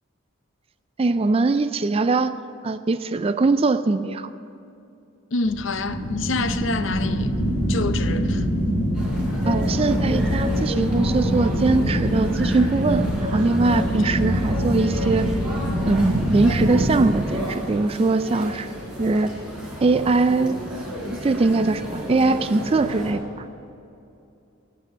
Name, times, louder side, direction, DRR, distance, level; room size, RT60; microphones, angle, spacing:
voice 1, 1.0-2.4 2.6-4.3 9.5-15.3 15.9-18.7 19.0-19.3 19.8-20.6 21.2-23.2, right 3 dB, 30° right, 0.3 m, -21 dB
voice 2, 5.3-7.3 7.7-8.5, left 3 dB, 60° left, 0.7 m, -27 dB
sound 1, 5.4-17.1, equal, 40° left, 3.6 m, -24 dB
sound 2, 8.9-23.1, equal, 5° right, 4.0 m, -32 dB
12.0 x 8.3 x 9.8 m
head